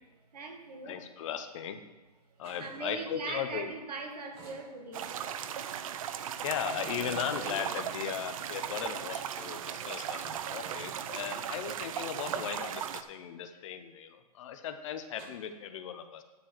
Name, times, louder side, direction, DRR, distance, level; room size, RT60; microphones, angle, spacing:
voice 1, 0.3-1.0 2.6-5.1, right 4 dB, 75° right, 4 dB, 2.0 m, -40 dB
voice 2, 0.8-1.8 2.4-3.7 6.4-16.2, left 8 dB, 50° left, 9 dB, 0.9 m, -37 dB
sound 1, 2.4-2.8 4.3-5.1 6.7-8.0 9.3-11.0 12.3-12.7 13.1-13.3 15.2-15.3, right 3 dB, 30° right, 2.1 m, -47 dB
sound 2, 4.9-13.0, right 9 dB, 55° right, 0.7 m, -37 dB
10.5 x 4.7 x 7.1 m, 1.2 s
hypercardioid pair, 130°, 20 cm